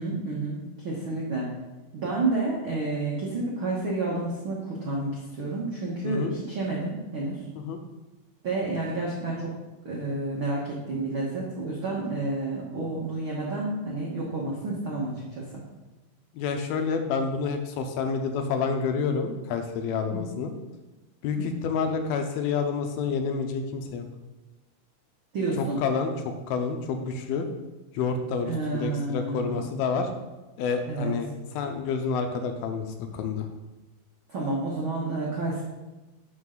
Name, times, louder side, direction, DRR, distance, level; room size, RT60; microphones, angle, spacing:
voice 1, 0.0-1.5 1.9-7.4 8.4-9.5 9.8-15.5 20.1-20.4 21.4-21.6 25.3-25.8 28.5-29.7 30.9-31.1 34.3-35.6, right 2 dB, 75° right, -4 dB, 1.1 m, -30 dB
voice 2, 6.0-6.4 7.6-7.8 16.3-20.5 21.2-24.1 25.6-27.5 27.9-30.1 30.6-31.3 31.5-33.5, left 5 dB, 80° left, 6 dB, 2.5 m, -29 dB
12.0 x 5.6 x 3.9 m, 1.1 s
omnidirectional pair, 4.6 m